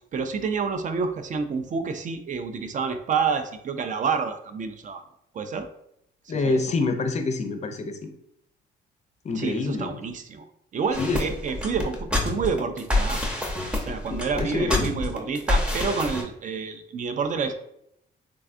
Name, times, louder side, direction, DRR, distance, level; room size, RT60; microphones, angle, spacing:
voice 1, 0.1-5.0 5.3-5.7 6.3-6.6 9.4-10.4 10.7-13.2 13.9-17.5, right 5 dB, 40° right, 9 dB, 0.4 m, -28 dB
voice 2, 6.3-8.1 9.2-10.0 11.0-11.2 14.1-14.9, left 3 dB, 35° left, 7 dB, 0.4 m, -27 dB
sound 1, 10.9-16.2, left 2 dB, 5° right, 0.6 m, -27 dB
3.5 x 2.2 x 2.5 m, 0.76 s
cardioid pair, 90°, 20 cm